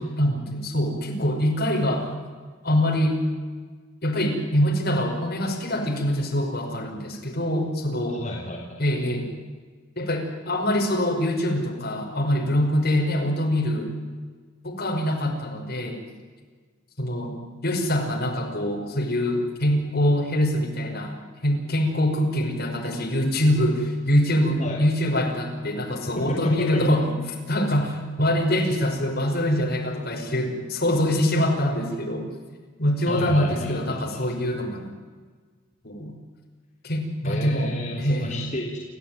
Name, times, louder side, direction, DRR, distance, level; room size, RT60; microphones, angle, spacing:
voice 1, 0.0-2.1 2.6-3.2 4.0-8.2 8.8-9.3 10.0-13.9 14.6-16.0 17.0-17.4 17.6-21.2 21.4-27.2 27.5-32.3 32.8-34.9 35.8-36.1 36.8-38.4, equal, 55° left, 1 dB, 5.7 m, -24 dB
voice 2, 8.1-8.8 24.6-24.8 26.2-26.8 33.1-34.3 37.2-38.8, left 1 dB, 40° left, -3 dB, 3.8 m, -32 dB
29.0 x 15.0 x 9.3 m, 1.5 s
head